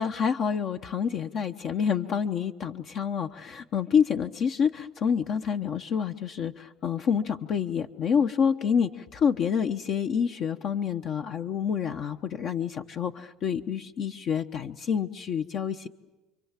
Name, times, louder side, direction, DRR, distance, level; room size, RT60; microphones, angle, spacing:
voice 1, 0.0-15.9, left 7 dB, 50° left, 6 dB, 1.0 m, -28 dB
29.5 x 23.5 x 7.5 m, 1.1 s
supercardioid pair, 110°, 0 cm